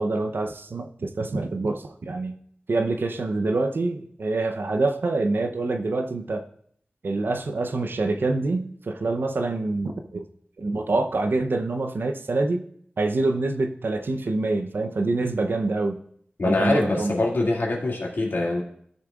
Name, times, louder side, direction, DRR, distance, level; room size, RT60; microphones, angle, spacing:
voice 1, 0.0-2.3 2.7-6.4 7.0-10.2 10.6-12.6 13.0-16.0 16.4-17.1, right 3 dB, 80° right, 6 dB, 0.6 m, -26 dB
voice 2, 16.4-18.6, left 2 dB, 75° left, -2 dB, 2.2 m, -24 dB
15.5 x 6.5 x 2.4 m, 0.65 s
wide cardioid pair, 80°, 4 cm